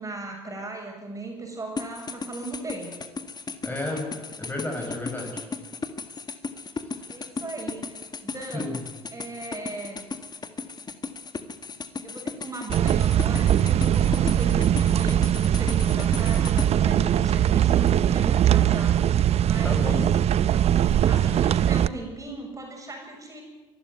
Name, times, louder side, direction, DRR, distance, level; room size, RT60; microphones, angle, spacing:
voice 1, 0.0-2.9 7.1-8.8 9.1-10.0 12.0-19.0 19.4-19.9 20.5-23.4, right 2 dB, 25° right, 1 dB, 7.4 m, -37 dB
sound 1, 1.8-16.7, left 4 dB, 30° left, 1.8 m, -35 dB
voice 2, 3.6-4.1 4.4-5.4 8.5-8.7 19.6-20.1, left 2 dB, 15° left, 0 dB, 6.2 m, -31 dB
sound 2, 12.7-21.9, right 10 dB, 50° right, 0.7 m, -21 dB
24.0 x 12.0 x 9.4 m, 1.2 s
hypercardioid pair, 65°, 14 cm